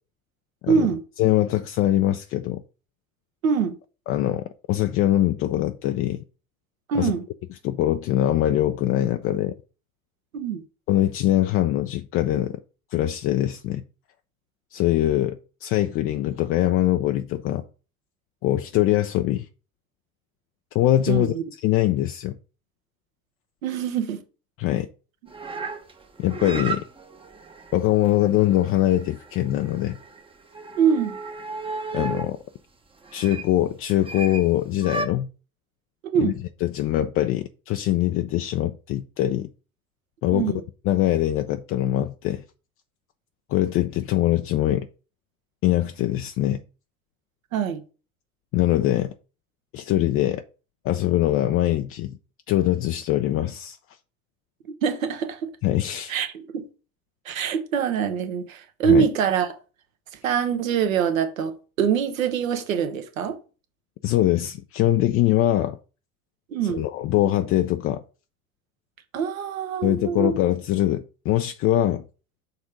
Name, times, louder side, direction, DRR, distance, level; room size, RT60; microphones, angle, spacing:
voice 1, 0.7-1.0 3.4-3.7 6.9-7.2 10.3-10.6 21.1-21.4 23.6-24.2 30.7-31.2 36.0-36.4 40.3-40.6 47.5-47.8 54.8-55.5 56.1-56.7 57.2-59.5 60.2-63.4 66.5-66.8 69.1-70.3, right 7 dB, 70° right, 1.2 m, -24 dB
voice 2, 1.2-2.6 4.1-6.2 6.9-7.1 7.6-9.5 10.9-12.6 12.9-13.8 14.7-17.6 18.4-19.5 20.7-22.4 24.6-24.9 26.2-26.8 27.7-30.0 31.9-32.4 33.1-35.3 36.2-36.3 36.6-39.5 40.2-40.5 40.9-42.4 43.5-44.9 45.6-46.6 48.5-49.1 49.7-50.4 50.8-52.2 52.5-53.8 55.6-56.1 58.9-59.0 64.0-65.8 66.7-68.0 69.8-72.0, left 13 dB, 35° left, 0.4 m, -22 dB
sound 1, 25.3-32.3 33.0-33.5 34.0-34.5 34.8-35.1, right 3 dB, 15° right, 0.8 m, -35 dB
6.5 x 3.5 x 4.9 m
figure-of-eight pair, 75°, 42 cm